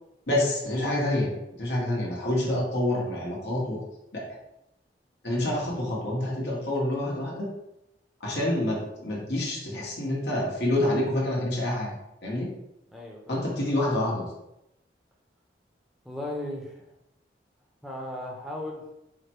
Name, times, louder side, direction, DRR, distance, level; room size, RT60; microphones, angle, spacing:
voice 1, 0.3-1.3 1.6-3.8 4.1-4.2 5.2-7.5 8.2-12.5 13.3-14.3, left 1 dB, 75° left, -5 dB, 1.3 m, -27 dB
voice 2, 12.9-13.4 13.6-13.7 16.0-16.8 17.8-19.0, left 1 dB, ahead, -2 dB, 0.7 m, -37 dB
4.9 x 2.1 x 4.5 m, 0.87 s
head